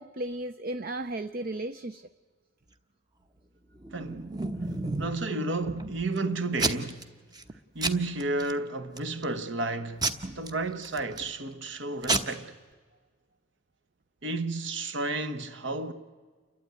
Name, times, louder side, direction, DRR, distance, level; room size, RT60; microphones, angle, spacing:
voice 1, 0.0-2.0, right 1 dB, 45° right, 0.5 m, -34 dB
Packing tape duct tape / Tearing, 3.8-5.2 5.7-6.2 6.6-7.0 7.3-7.5 7.8-8.5 9.0-9.3 10.0-11.3 11.8-11.9 12.0-12.2, right 2 dB, 20° right, 0.9 m, -30 dB
voice 2, 3.9-4.4 5.0-7.0 7.7-10.0 10.3-12.5 14.2-15.9, right 2 dB, 60° right, 1.3 m, -32 dB
29.0 x 12.5 x 9.5 m
head